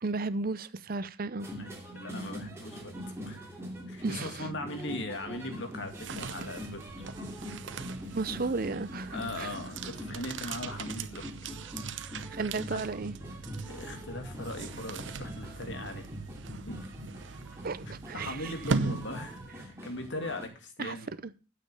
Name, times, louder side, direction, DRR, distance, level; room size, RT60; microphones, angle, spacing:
voice 1, 0.0-1.5 4.0-4.4 8.1-9.5 12.3-13.1 17.6-18.5 20.8-21.0, right 3 dB, 50° right, 0.6 m, -34 dB
sound 1, 1.4-20.5, equal, 15° right, 2.8 m, -43 dB
voice 2, 1.5-2.9 3.2-3.4 3.9-7.1 9.1-11.3 12.7-12.8 13.7-16.1 16.7-16.8 18.1-21.1, left 1 dB, 80° left, 2.3 m, -39 dB
sound 2, 5.7-19.8, right 4 dB, 85° right, 0.8 m, -39 dB
9.4 x 7.7 x 6.8 m
head